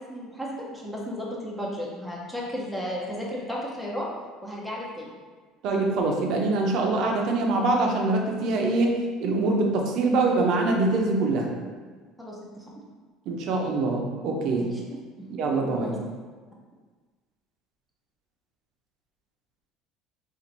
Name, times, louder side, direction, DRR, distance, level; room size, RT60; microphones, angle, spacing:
voice 1, 0.1-4.1 4.4-5.2 12.2-12.6 14.6-15.3 15.8-15.9, equal, ahead, -5 dB, 0.5 m, -34 dB
voice 2, 5.6-11.5 13.3-14.7 15.4-16.0, right 2 dB, 50° right, 1 dB, 0.6 m, -24 dB
4.4 x 2.5 x 3.9 m, 1.4 s
cardioid pair, 175°, 0 cm